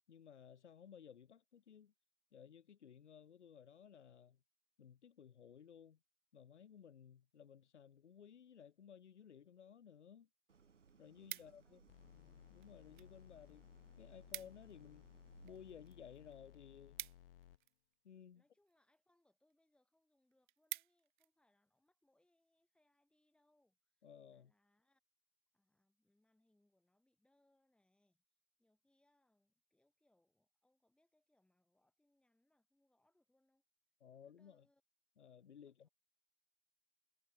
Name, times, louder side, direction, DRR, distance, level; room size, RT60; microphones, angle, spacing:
voice 1, 0.1-1.9 2.3-4.4 4.8-6.0 6.3-10.3 11.0-11.9 12.1-13.6 14.0-15.1 15.4-17.0 18.0-18.4 24.0-24.5 34.0-34.6 35.2-35.9, left 8 dB, 70° left, 1.4 m, -58 dB
Idling, 10.5-16.6, right 6 dB, 85° right, 1.1 m, -67 dB
sound 1, 10.7-11.9 12.6-13.1 13.4-13.5 13.8-13.9 14.1-14.7 15.1-17.9 18.7-19.0 19.5-19.6 19.9-20.0 20.3-21.3 21.8-22.0, right 15 dB, 45° right, 0.7 m, -50 dB
voice 2, 11.2-12.0 18.3-25.0 25.5-28.2 28.6-33.6 34.1-34.8 35.6-35.9, left 1 dB, 5° left, 4.2 m, -80 dB
sound 2, 11.9-17.6, left 13 dB, 55° left, 0.6 m, -62 dB
figure-of-eight pair, 120°, 36 cm